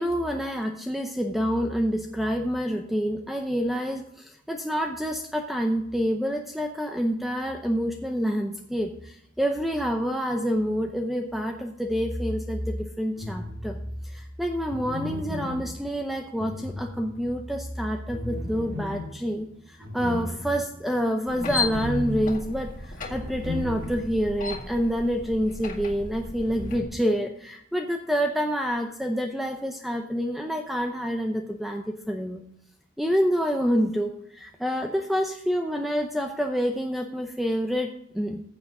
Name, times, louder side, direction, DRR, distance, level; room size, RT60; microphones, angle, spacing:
voice 1, 0.0-13.8 14.1-19.5 19.9-32.4 33.0-38.4, equal, ahead, 3 dB, 0.6 m, -27 dB
sound 1, 13.1-13.9 14.7-17.4 18.1-24.3 24.6-24.7 26.4-26.8, left 1 dB, 65° right, 2.9 m, -36 dB
sound 2, 21.3-26.8, left 3 dB, 40° left, 2.0 m, -35 dB
15.0 x 7.5 x 3.7 m, 0.74 s
head